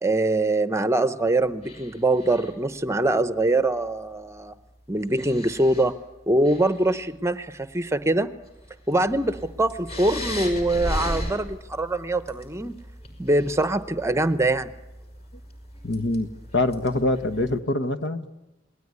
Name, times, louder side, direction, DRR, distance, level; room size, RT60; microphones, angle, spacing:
voice 1, 0.0-4.5 4.9-5.9 6.3-8.3 8.9-12.8 13.2-14.7, right 2 dB, 15° right, 11 dB, 0.8 m, -23 dB
sound 1, 1.6-2.7 4.2-4.3 5.0-5.9 6.3-7.1 7.7-7.8 8.4-17.6, equal, 35° left, 5.8 m, -37 dB
voice 2, 15.8-18.3, left 2 dB, 65° left, 9 dB, 1.4 m, -25 dB
27.5 x 20.0 x 9.6 m, 1.0 s
head